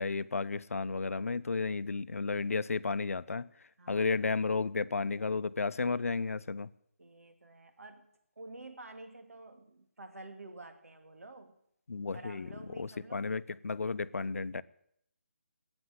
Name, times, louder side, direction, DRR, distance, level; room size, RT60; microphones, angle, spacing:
voice 1, 0.0-3.5 3.9-6.7 11.9-12.5 12.8-14.6, left 4 dB, 80° left, 0.7 m, -33 dB
voice 2, 3.8-4.1 7.0-8.1 8.4-11.6 12.1-13.3, right 2 dB, 90° right, 2.6 m, -50 dB
13.5 x 9.0 x 9.7 m
hypercardioid pair, 175°, 8 cm